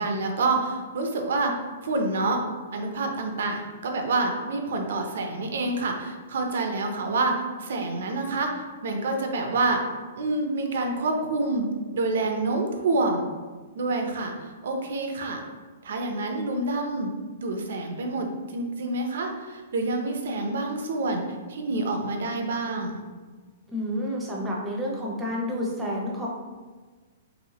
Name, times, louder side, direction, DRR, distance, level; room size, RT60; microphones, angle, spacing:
voice 1, 0.0-1.5 1.8-2.4 2.7-9.8 10.1-11.7 11.9-13.3 13.8-15.4 15.8-17.1 17.4-21.2 21.5-23.0, right 2 dB, 70° right, 4 dB, 0.5 m, -27 dB
voice 2, 23.7-26.3, equal, 10° right, -3 dB, 0.5 m, -29 dB
3.0 x 2.9 x 2.8 m, 1.4 s
hypercardioid pair, 160°, 0 cm